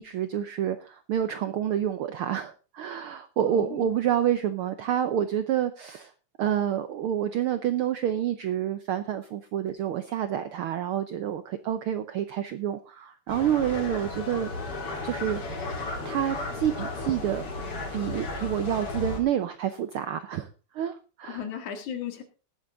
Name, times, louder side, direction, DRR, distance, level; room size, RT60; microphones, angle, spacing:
voice 1, 0.0-6.1 6.4-14.5 15.0-15.7 16.0-17.4 17.9-20.5 20.7-21.4, right 10 dB, 80° right, 11 dB, 1.2 m, -28 dB
voice 2, 3.4-3.9 21.3-22.2, left 8 dB, 80° left, 7 dB, 3.3 m, -36 dB
sound 1, 13.3-19.2, left 2 dB, 50° left, 3.8 m, -34 dB
19.5 x 7.8 x 3.8 m, 0.34 s
omnidirectional pair, 3.3 m